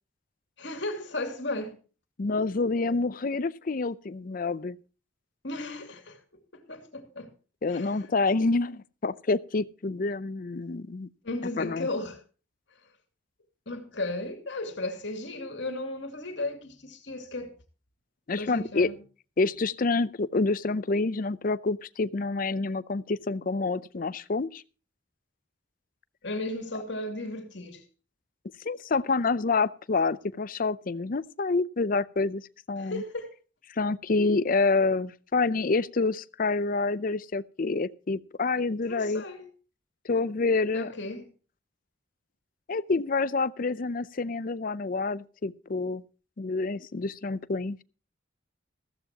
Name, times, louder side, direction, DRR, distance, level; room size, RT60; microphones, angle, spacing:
voice 1, 0.6-1.8 5.4-6.2 6.5-7.3 7.7-8.0 11.2-12.2 13.7-17.5 18.4-19.0 26.2-27.8 32.8-33.3 38.8-39.5 40.7-41.3, left 2 dB, 65° left, 2.5 m, -35 dB
voice 2, 2.2-4.8 7.6-11.1 11.6-11.9 18.3-18.9 19.4-24.6 28.6-32.4 32.7-33.0 33.8-39.2 40.0-40.9 42.7-46.0 46.4-47.8, left 3 dB, 45° left, 0.5 m, -27 dB
15.0 x 14.5 x 2.9 m
head